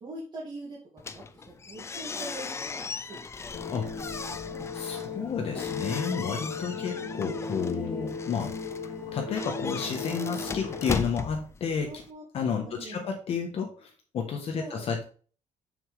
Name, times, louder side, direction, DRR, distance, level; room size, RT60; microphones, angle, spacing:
voice 1, 0.0-3.2 3.8-4.7 6.9-7.1 11.9-12.2 12.6-13.1 14.5-14.9, right 2 dB, 35° right, -6 dB, 2.4 m, -43 dB
sound 1, 1.0-12.1, left 4 dB, 20° left, 0.5 m, -38 dB
sound 2, 3.5-11.0, left 4 dB, 90° left, 2.3 m, -36 dB
voice 2, 4.7-8.5 9.1-11.9 12.3-13.9 14.1-15.0, left 6 dB, 50° left, 3 dB, 1.2 m, -31 dB
7.1 x 6.7 x 3.4 m, 0.40 s
cardioid pair, 165°, 13 cm